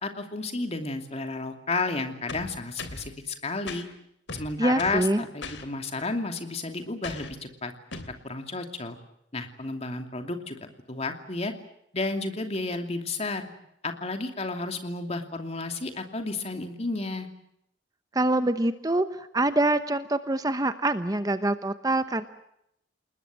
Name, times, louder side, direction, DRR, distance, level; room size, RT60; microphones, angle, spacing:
voice 1, 0.0-3.8 4.3-7.7 8.2-9.0 9.3-10.6 10.9-11.5 11.9-13.5 13.8-17.3, left 3 dB, 35° left, 6 dB, 2.7 m, -32 dB
sound 1, 2.3-3.1 3.7-3.8 4.3-5.1 5.4-5.6 7.0-7.4 7.9-8.2, left 3 dB, 85° left, 3.1 m, -38 dB
voice 2, 4.6-5.2 18.1-22.3, right 2 dB, 20° right, 11 dB, 0.9 m, -25 dB
29.0 x 20.5 x 7.6 m, 0.75 s
head